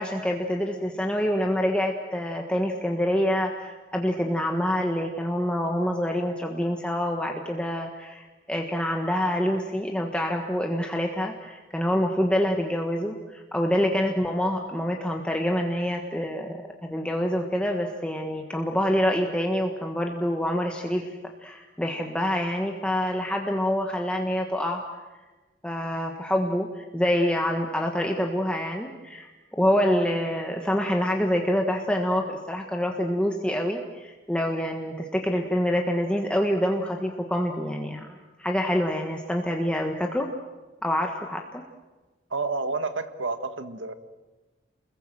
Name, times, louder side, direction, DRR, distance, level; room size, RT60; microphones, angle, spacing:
voice 1, 0.0-24.8 25.6-40.3 40.8-41.6, equal, 5° left, 2 dB, 1.5 m, -26 dB
voice 2, 42.3-43.9, right 3 dB, 90° right, 10 dB, 1.6 m, -29 dB
29.0 x 21.5 x 7.7 m, 1.2 s
head